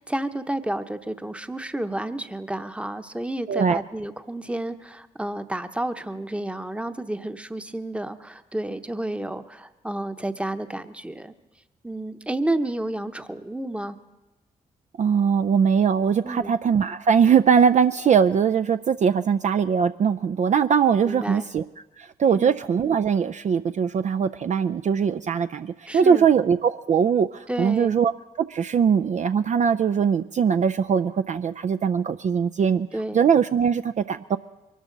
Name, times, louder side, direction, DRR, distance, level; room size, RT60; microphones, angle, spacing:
voice 1, 0.0-11.3 11.8-14.0 16.2-16.5 21.0-21.5 22.3-22.6 25.9-26.3 27.5-28.0 32.9-33.2, right 1 dB, 5° right, 9 dB, 0.9 m, -31 dB
voice 2, 3.5-3.8 15.0-21.6 22.0-28.1 28.5-32.9 33.1-34.4, right 7 dB, 45° right, 8 dB, 0.4 m, -21 dB
23.0 x 13.0 x 3.9 m, 1.1 s
supercardioid pair, 45°, 17 cm